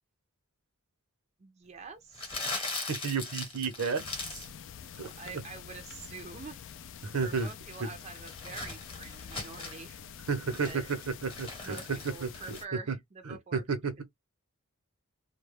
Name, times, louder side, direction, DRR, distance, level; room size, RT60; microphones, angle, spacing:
voice 1, 1.4-2.4 5.0-6.6 7.2-10.0 10.6-10.9 11.6-13.6, right 5 dB, 30° right, 0.5 m, -46 dB
Crumpling crinkling, 2.1-4.6 4.9-5.3 7.0-9.9 10.3-12.6, left 3 dB, 25° left, 0.9 m, -40 dB
voice 2, 2.9-4.4 5.0-5.1 7.0-7.5 7.8-7.9 10.3-12.6 12.9-13.0 13.3-14.0, right 5 dB, 80° right, 0.8 m, -32 dB
sound 1, 4.0-12.7, left 8 dB, 60° left, 0.4 m, -47 dB
2.3 x 2.1 x 3.2 m
head